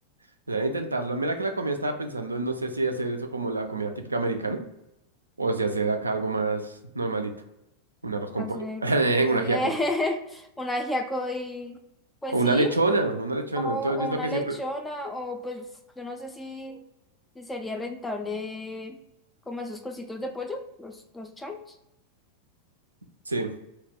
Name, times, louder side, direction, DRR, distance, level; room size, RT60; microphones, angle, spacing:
voice 1, 0.5-4.6 5.4-7.3 8.0-9.6 12.3-14.6 23.3-23.5, right 2 dB, 80° right, 6 dB, 0.3 m, -27 dB
voice 2, 8.3-8.8 9.3-11.8 12.2-12.8 13.6-15.7 16.0-16.8 17.4-19.0 19.5-21.6, left 1 dB, 10° left, 4 dB, 0.3 m, -32 dB
2.3 x 2.0 x 3.4 m, 0.85 s
figure-of-eight pair, 90°, 0 cm